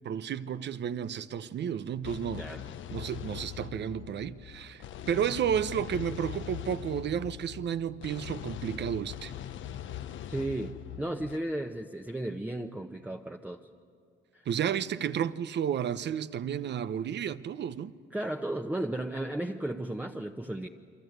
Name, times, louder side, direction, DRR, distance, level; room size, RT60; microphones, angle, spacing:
voice 1, 0.0-2.5 2.9-9.3 14.5-17.9, right 8 dB, 60° right, 0.9 m, -32 dB
sound 1, 2.0-11.4, left 11 dB, 75° left, 0.9 m, -41 dB
voice 2, 10.3-13.6 14.3-14.4 18.1-20.7, right 1 dB, 10° right, 1.0 m, -34 dB
28.5 x 23.5 x 8.1 m
cardioid pair, 90°, 20 cm